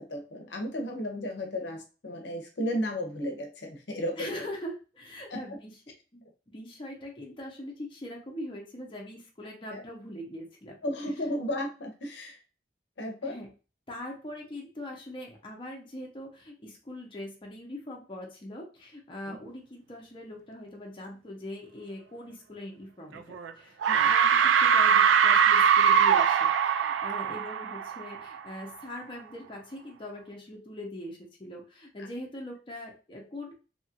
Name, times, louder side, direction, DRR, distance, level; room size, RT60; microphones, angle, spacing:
voice 1, 0.0-4.5 5.3-5.4 9.7-9.8 10.8-12.4 13.0-13.4 19.3-19.4 23.8-24.1 27.3-27.4, equal, 75° left, 3 dB, 0.7 m, -34 dB
voice 2, 4.2-5.7 6.1-6.2 6.5-10.8 13.2-13.5 13.9-33.6, left 1 dB, 30° left, -1 dB, 0.6 m, -42 dB
sound 1, 23.2-23.5 23.8-28.4, right 7 dB, 90° right, 0.3 m, -22 dB
2.8 x 2.4 x 2.8 m, 0.34 s
head